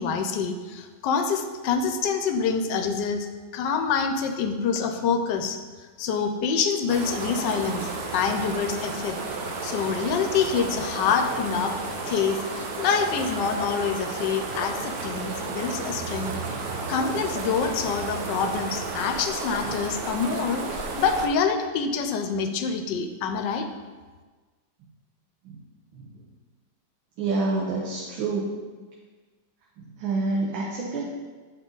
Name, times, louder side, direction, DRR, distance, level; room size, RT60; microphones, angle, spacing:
voice 1, 0.0-3.3 3.5-5.6 6.0-9.2 9.6-11.8 12.1-16.4 16.9-23.7, left 6 dB, 75° left, 7 dB, 1.2 m, -26 dB
sound 1, 6.9-21.3, right 3 dB, 60° right, 1.2 m, -33 dB
voice 2, 27.2-28.5 29.8-31.0, right 3 dB, 90° right, -4 dB, 1.7 m, -28 dB
8.1 x 5.0 x 3.8 m, 1.4 s
omnidirectional pair, 2.1 m